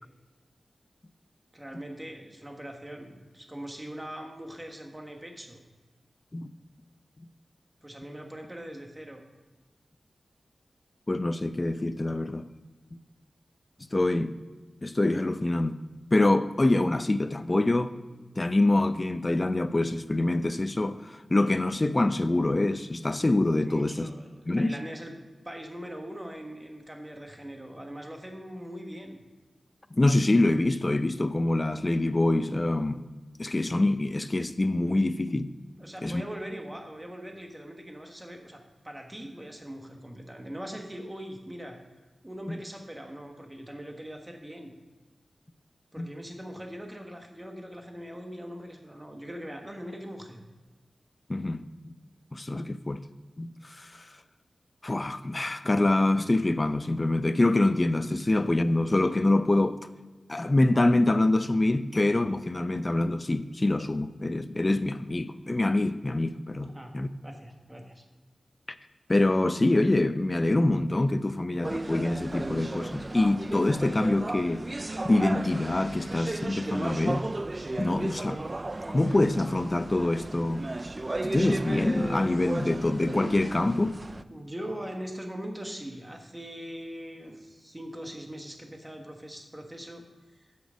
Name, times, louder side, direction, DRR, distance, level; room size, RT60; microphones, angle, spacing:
voice 1, 1.5-5.6 7.8-9.2 23.6-25.1 25.4-29.2 35.8-41.8 42.2-44.8 45.9-50.4 66.6-66.9 67.2-68.0 84.3-90.0 90.4-90.5, equal, 15° right, 1.3 m, -41 dB
voice 2, 11.1-12.4 13.9-14.4 14.8-15.8 16.1-17.9 18.4-24.1 24.5-24.7 29.9-33.1 33.4-35.5 36.0-36.2 42.5-42.6 46.0-46.1 51.3-51.6 52.3-53.0 53.4-53.5 53.8-54.0 54.8-59.8 60.3-67.1 69.1-74.6 75.0-77.3 77.8-78.4 78.9-80.6 81.2-84.0, left 2 dB, 30° left, 0.4 m, -25 dB
sound 1, 71.6-84.2, right 2 dB, 35° right, 0.3 m, -35 dB
8.5 x 6.1 x 5.0 m
wide cardioid pair, 65°, 0 cm